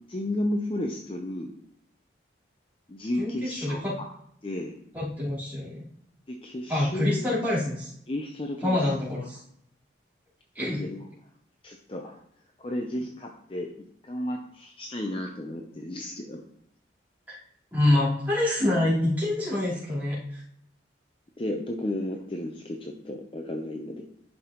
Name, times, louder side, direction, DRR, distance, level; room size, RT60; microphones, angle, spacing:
voice 1, 0.1-1.5 2.9-4.1 4.4-4.8 6.3-7.3 8.1-8.8 10.6-11.1 11.6-12.2 12.6-13.7 14.0-16.4 21.4-24.0, left 1 dB, 30° left, 2 dB, 0.6 m, -33 dB
voice 2, 3.2-3.9 4.9-5.8 6.7-7.9 8.6-9.4 10.5-10.8 17.3-17.4 17.7-20.4, left 1 dB, 10° right, -9 dB, 3.1 m, -26 dB
11.0 x 5.3 x 3.0 m, 0.69 s
head